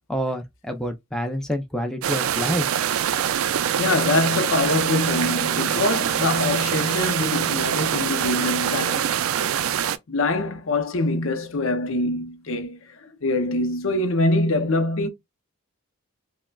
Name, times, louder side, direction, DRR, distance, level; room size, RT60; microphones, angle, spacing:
voice 1, 0.1-2.7, equal, 5° left, 0.4 m, -27 dB
sound 1, 2.0-10.0, right 9 dB, 75° right, 0.3 m, -24 dB
voice 2, 3.8-9.1 10.1-15.1, left 2 dB, 65° left, 0.6 m, -24 dB
5.6 x 2.1 x 2.2 m
head